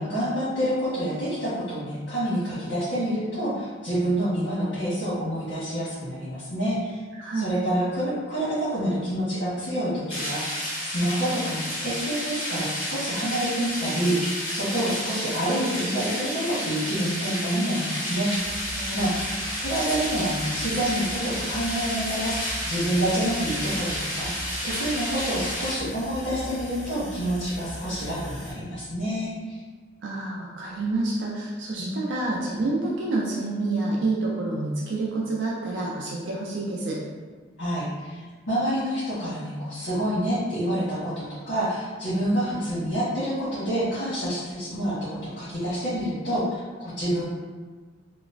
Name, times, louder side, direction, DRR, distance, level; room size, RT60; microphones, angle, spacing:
voice 1, 0.0-7.0 7.3-18.3 18.9-19.3 19.6-24.3 24.6-29.6 31.8-31.9 37.6-47.2, right 1 dB, 80° left, -13 dB, 1.2 m, -28 dB
voice 2, 7.2-7.5 18.8-19.2 30.0-37.0, right 2 dB, 70° right, -4 dB, 0.4 m, -28 dB
sound 1, 10.1-25.7, equal, 30° left, 1.5 m, -31 dB
sound 2, 18.3-28.5, equal, 5° left, 1.1 m, -39 dB
2.9 x 2.0 x 2.5 m, 1.4 s
head